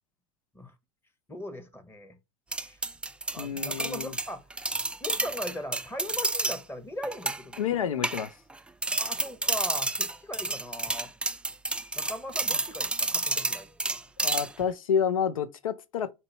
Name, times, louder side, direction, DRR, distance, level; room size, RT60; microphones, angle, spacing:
voice 1, 1.3-2.2 2.5-2.8 3.3-4.5 5.0-7.9 9.0-11.1 11.9-14.0, left 1 dB, 15° left, 1.1 m, -39 dB
sound 1, 2.5-6.6 7.0-7.6 8.0-8.6 8.8-14.7, right 2 dB, 5° right, 0.3 m, -30 dB
voice 2, 3.4-4.2 7.6-8.3 14.2-16.1, left 7 dB, 90° left, 0.5 m, -29 dB
4.4 x 2.7 x 4.1 m
hypercardioid pair, 85°, 17 cm